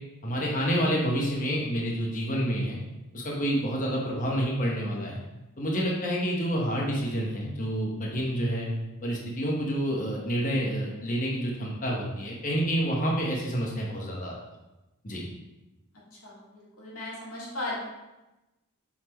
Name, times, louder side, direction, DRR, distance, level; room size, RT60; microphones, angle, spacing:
voice 1, 0.2-2.8 3.1-5.2 5.6-8.7 9.0-14.3 15.0-15.2, equal, 35° left, -3 dB, 1.1 m, -28 dB
voice 2, 16.2-17.8, left 2 dB, 70° left, -5 dB, 2.1 m, -36 dB
7.6 x 4.3 x 3.0 m, 1.0 s
head